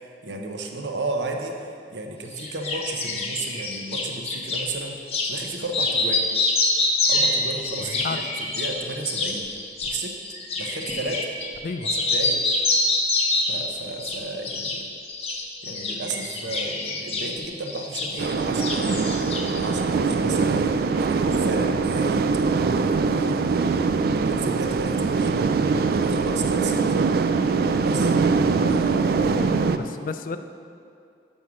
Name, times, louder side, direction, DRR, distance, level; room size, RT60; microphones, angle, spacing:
voice 1, 0.2-6.3 7.1-9.5 9.8-10.2 10.6-11.3 11.9-12.4 13.5-14.9 15.6-19.0 19.5-22.2 22.7-25.4 25.9-26.8 27.8-28.2 28.7-29.7, right 2 dB, 80° right, 3 dB, 0.8 m, -33 dB
sound 1, 2.4-4.7 5.1-5.4 5.7-11.6 11.8-13.7 14.0-14.8 15.1-18.3 18.6-19.6, left 2 dB, 35° left, 0.7 m, -26 dB
voice 2, 7.8-8.2 11.6-11.9 29.1-30.4, left 4 dB, 50° left, 10 dB, 0.3 m, -32 dB
sound 2, 18.2-29.8, right 4 dB, 55° right, 0.3 m, -22 dB
6.2 x 5.4 x 6.0 m, 2.5 s
head